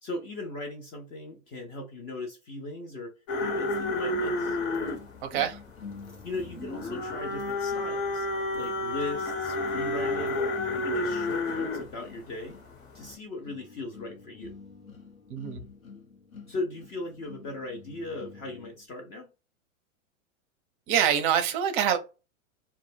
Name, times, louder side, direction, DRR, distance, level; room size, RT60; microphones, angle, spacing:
voice 1, 0.0-4.6 6.2-8.3 8.5-12.6 12.9-14.6 16.5-19.3, left 2 dB, 25° left, 0.4 m, -38 dB
sound 1, 3.3-11.9 12.4-12.7 13.0-13.1, left 2 dB, 50° left, 0.9 m, -30 dB
sound 2, 3.4-18.8, left 5 dB, 85° left, 0.8 m, -48 dB
voice 2, 5.2-5.6 15.3-15.6 20.9-22.0, right 9 dB, 40° right, 0.5 m, -25 dB
2.1 x 2.0 x 3.2 m
hypercardioid pair, 105°, 40 cm